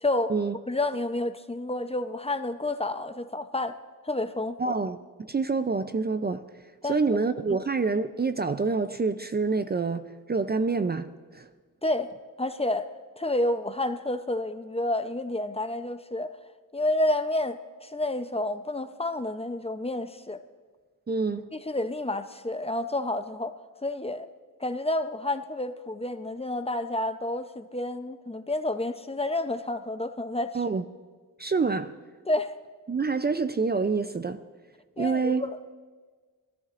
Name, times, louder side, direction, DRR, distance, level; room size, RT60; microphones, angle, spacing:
voice 1, 0.0-0.3 0.7-3.8 4.0-4.8 6.8-7.0 7.5-7.6 11.8-12.1 12.4-12.9 13.2-16.3 16.7-20.4 21.5-24.3 24.6-30.6 32.3-32.5 35.0-35.5, left 1 dB, 20° left, 0.6 m, -29 dB
voice 2, 4.6-6.4 6.8-11.5 21.1-21.5 30.5-30.8 31.4-31.9 32.9-34.4 35.0-35.4, right 4 dB, 30° right, 0.5 m, -27 dB
23.5 x 13.5 x 2.5 m
wide cardioid pair, 95°, 33 cm